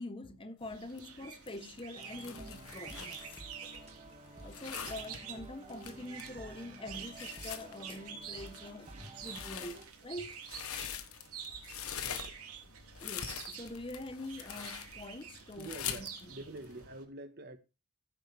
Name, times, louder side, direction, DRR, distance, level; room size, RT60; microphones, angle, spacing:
voice 1, 0.0-3.4 4.4-10.4 13.0-16.3, left 1 dB, 25° left, 1.0 m, -45 dB
sound 1, 0.6-16.9, left 8 dB, 75° left, 1.3 m, -44 dB
sound 2, 0.6-17.0, right 7 dB, 90° right, 3.1 m, -49 dB
sound 3, 1.9-9.8, right 1 dB, 30° right, 2.1 m, -52 dB
voice 2, 11.7-12.6 12.9-13.1 15.6-17.6, right 2 dB, 45° right, 1.5 m, -47 dB
15.0 x 7.6 x 3.5 m
head